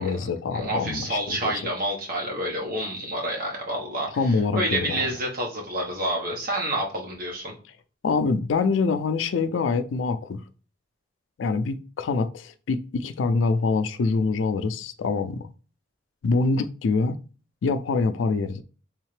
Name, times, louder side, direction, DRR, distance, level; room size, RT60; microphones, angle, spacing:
voice 1, 0.0-1.5 4.1-5.1 8.0-10.4 11.4-15.5 16.2-17.2 17.6-18.6, left 4 dB, 80° left, 0.4 m, -25 dB
voice 2, 0.5-7.5, right 1 dB, 50° right, 1.2 m, -28 dB
3.6 x 3.2 x 3.2 m
head